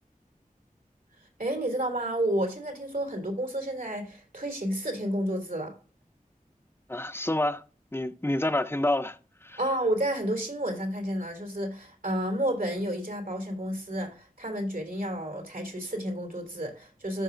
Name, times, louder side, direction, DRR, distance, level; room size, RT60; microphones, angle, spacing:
voice 1, 1.4-5.7 9.6-17.2, right 1 dB, 75° right, 3.1 m, -31 dB
voice 2, 6.9-7.6 7.9-9.6, left 1 dB, 15° left, 0.8 m, -28 dB
14.0 x 5.3 x 2.6 m
wide cardioid pair, 40°, 15 cm